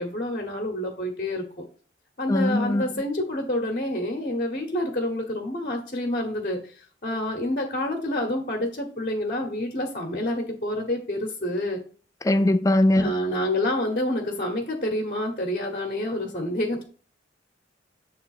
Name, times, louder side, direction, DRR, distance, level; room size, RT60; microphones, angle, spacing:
voice 1, 0.0-1.6 2.2-11.8 13.0-16.8, left 1 dB, 45° left, 1.2 m, -28 dB
voice 2, 2.3-2.8 12.2-13.1, left 1 dB, 20° left, 0.4 m, -20 dB
8.0 x 3.4 x 4.9 m
head